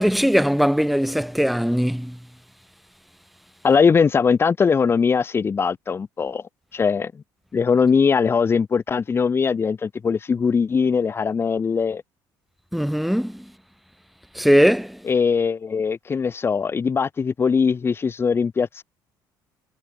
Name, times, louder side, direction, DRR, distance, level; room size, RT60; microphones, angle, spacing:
voice 1, 0.0-2.2 12.7-13.4 14.3-15.0, equal, ahead, 7.4 m, -20 dB
voice 2, 3.6-6.4 6.7-7.1 7.5-12.0 15.1-18.8, left 5 dB, 30° left, 5.8 m, -20 dB
cardioid pair, 115°, 8 cm